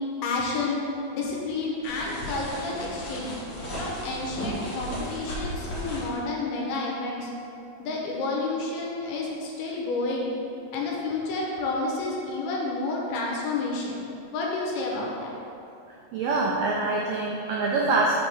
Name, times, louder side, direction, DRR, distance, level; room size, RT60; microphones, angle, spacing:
voice 1, 0.2-0.8 1.1-3.4 3.8-7.3 7.8-10.3 10.7-14.0 14.3-15.3, left 3 dB, 80° left, -2 dB, 2.7 m, -30 dB
sound 1, 1.8-6.2, equal, 55° left, 2.4 m, -35 dB
voice 2, 16.1-18.2, right 3 dB, 90° right, -3 dB, 1.9 m, -25 dB
6.3 x 3.5 x 6.0 m, 2.7 s
omnidirectional pair, 4.6 m